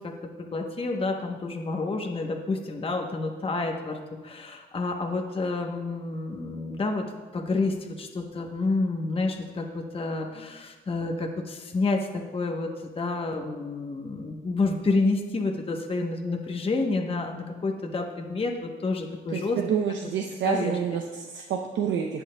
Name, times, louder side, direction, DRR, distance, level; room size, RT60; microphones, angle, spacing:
voice 1, 0.0-4.0 4.2-7.1 7.3-19.6 20.4-20.7, left 3 dB, 30° left, 2 dB, 0.9 m, -29 dB
voice 2, 19.3-22.2, right 7 dB, 75° right, 3 dB, 0.7 m, -28 dB
18.0 x 6.3 x 2.2 m, 1.3 s
cardioid pair, 90°, 20 cm